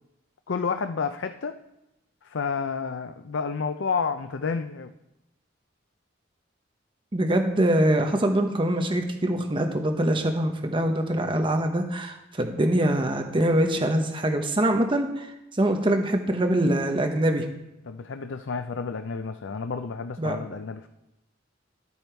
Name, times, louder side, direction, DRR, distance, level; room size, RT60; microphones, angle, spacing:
voice 1, 0.5-1.6 2.2-4.9 17.9-20.9, left 5 dB, 70° left, 9 dB, 0.5 m, -30 dB
voice 2, 7.1-17.5 20.2-20.4, right 1 dB, 25° right, 4 dB, 0.9 m, -24 dB
12.5 x 8.4 x 4.5 m, 0.92 s
head